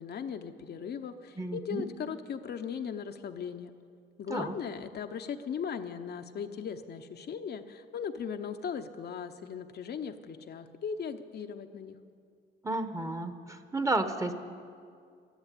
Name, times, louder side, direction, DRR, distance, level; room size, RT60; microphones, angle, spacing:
voice 1, 0.0-3.7 4.2-12.0, left 7 dB, 55° left, 7 dB, 0.8 m, -38 dB
voice 2, 1.4-1.8 4.3-4.5 12.6-14.3, right 2 dB, 15° right, 8 dB, 1.0 m, -32 dB
12.5 x 11.5 x 8.4 m, 2.2 s
cardioid pair, 90°, 20 cm